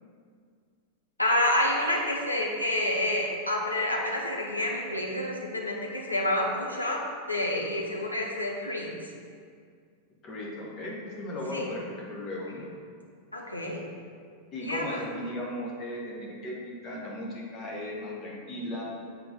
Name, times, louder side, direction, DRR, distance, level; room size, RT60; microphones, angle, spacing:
voice 1, 1.2-7.0 7.3-8.9 11.5-11.7 13.3-13.9 14.6-15.0, left 1 dB, 85° left, -1 dB, 0.9 m, -28 dB
voice 2, 10.2-12.6 14.5-18.8, left 1 dB, 30° left, -3 dB, 1.5 m, -36 dB
7.5 x 4.0 x 4.0 m, 2.1 s
figure-of-eight pair, 90°, 0 cm